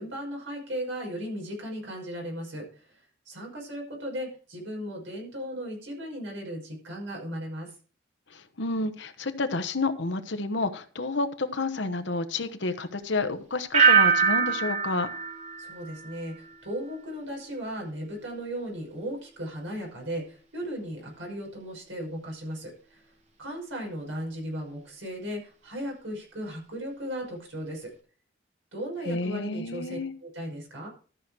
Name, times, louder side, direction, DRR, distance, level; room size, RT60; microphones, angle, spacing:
voice 1, 0.0-7.7 15.6-23.0 23.4-27.9 28.7-30.9, equal, 80° right, 5.5 m, -36 dB
voice 2, 8.3-15.1 29.1-30.1, left 3 dB, 65° left, 1.1 m, -30 dB
sound 1, 13.7-16.6 16.9-17.4, right 6 dB, 35° right, 1.5 m, -24 dB
13.5 x 6.1 x 4.8 m
head